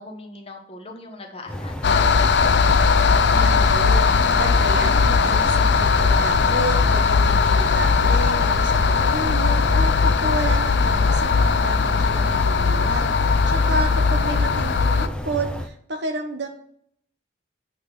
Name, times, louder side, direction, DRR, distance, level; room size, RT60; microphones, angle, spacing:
voice 1, 0.0-2.1 13.8-14.0, left 2 dB, 30° left, 2 dB, 1.1 m, -40 dB
sound 1, 1.5-15.7, left 1 dB, 5° left, 0.4 m, -31 dB
sound 2, 1.8-15.1, left 5 dB, 60° left, 0.4 m, -19 dB
voice 2, 3.3-4.1 4.3-16.5, right 2 dB, 60° right, 4 dB, 1.0 m, -31 dB
8.1 x 3.3 x 5.8 m, 0.67 s
head